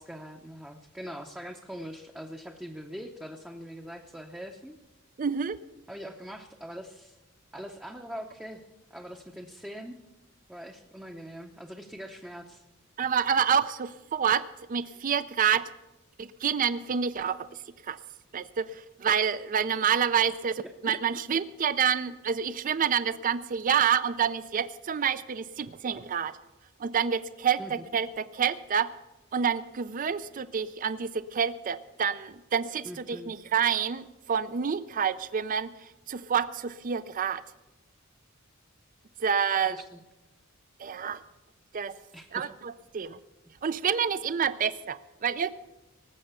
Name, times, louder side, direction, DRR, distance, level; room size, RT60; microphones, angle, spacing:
voice 1, 0.0-4.8 5.9-7.2 7.5-8.6 8.9-10.0 10.5-12.6 20.6-21.0 27.6-27.9 32.8-33.3 39.5-40.0 42.1-42.4, equal, 5° right, 1 dB, 0.7 m, -42 dB
voice 2, 5.2-5.6 13.0-15.7 16.2-17.5 17.9-18.0 18.3-26.3 26.8-28.9 29.3-37.4 39.2-39.8 40.8-41.2 41.7-42.0 42.3-43.2 43.6-45.5, right 7 dB, 40° right, 15 dB, 0.4 m, -28 dB
18.5 x 7.6 x 6.8 m, 1.0 s
head